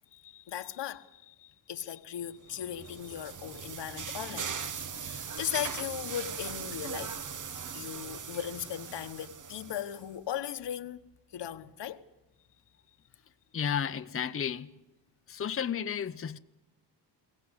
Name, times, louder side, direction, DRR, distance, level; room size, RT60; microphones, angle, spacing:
voice 1, 0.1-4.6 5.0-7.2 7.7-11.0 11.3-12.0, left 10 dB, 75° left, 1.4 m, -38 dB
sound 1, 2.5-10.0, right 6 dB, 45° right, 1.2 m, -40 dB
voice 2, 13.5-14.8 15.3-16.4, left 8 dB, 30° left, 0.8 m, -32 dB
23.0 x 18.0 x 8.1 m
cardioid pair, 95°, 42 cm